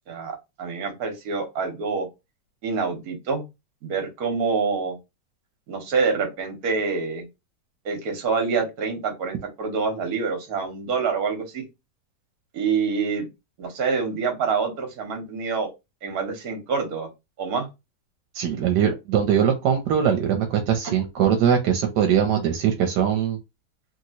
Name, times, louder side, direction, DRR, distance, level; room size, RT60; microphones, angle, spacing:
voice 1, 0.1-2.1 2.6-3.4 3.8-5.0 5.7-7.3 7.8-11.6 12.5-13.3 13.6-15.7 16.0-17.1 17.4-17.7, right 5 dB, 65° right, 1.4 m, -26 dB
voice 2, 18.3-23.4, right 8 dB, 85° right, 1.2 m, -21 dB
3.1 x 2.9 x 2.7 m
omnidirectional pair, 1.7 m